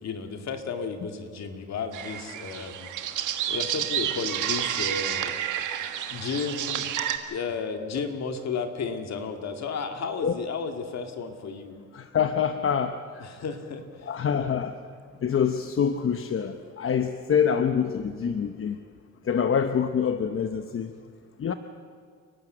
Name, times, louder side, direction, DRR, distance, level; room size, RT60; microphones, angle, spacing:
voice 1, 0.0-2.9 3.5-5.4 6.1-7.0 7.3-11.8 13.2-14.1, left 5 dB, 60° left, 5 dB, 2.4 m, -33 dB
sound 1, 1.9-7.2, right 10 dB, 80° right, 1.6 m, -30 dB
voice 2, 11.9-13.2 14.1-14.7 15.2-18.8 19.2-21.0 21.4-21.5, left 7 dB, 45° left, 8 dB, 0.9 m, -26 dB
29.5 x 12.0 x 8.0 m, 2.1 s
cardioid pair, 90°, 30 cm